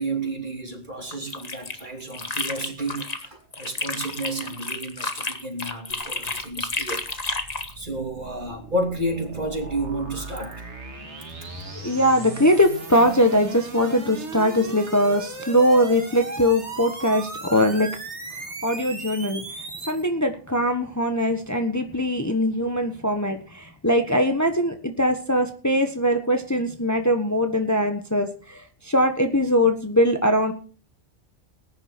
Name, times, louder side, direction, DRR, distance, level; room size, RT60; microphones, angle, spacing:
voice 1, 0.0-7.1 7.7-10.6, right 1 dB, 45° right, 3 dB, 3.3 m, -31 dB
sound 1, 1.1-3.3 3.5-7.7, left 3 dB, 35° left, 1.5 m, -31 dB
sound 2, 6.1-20.0, right 3 dB, 80° right, 2.5 m, -37 dB
voice 2, 11.8-17.9 18.6-30.5, equal, 15° left, 5 dB, 1.3 m, -21 dB
19.5 x 10.5 x 4.4 m, 0.38 s
omnidirectional pair, 1.2 m